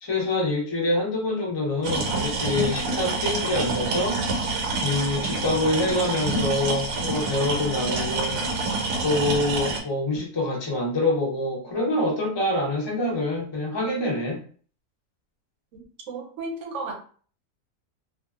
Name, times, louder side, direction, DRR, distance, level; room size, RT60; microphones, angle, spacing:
voice 1, 0.0-8.4 9.0-14.4, left 1 dB, 45° left, -2 dB, 0.3 m, -26 dB
sound 1, 1.8-9.8, right 3 dB, 80° right, 1.2 m, -27 dB
voice 2, 15.7-16.9, right 3 dB, 60° right, 1 dB, 0.9 m, -34 dB
2.6 x 2.3 x 2.3 m, 0.44 s
omnidirectional pair, 1.6 m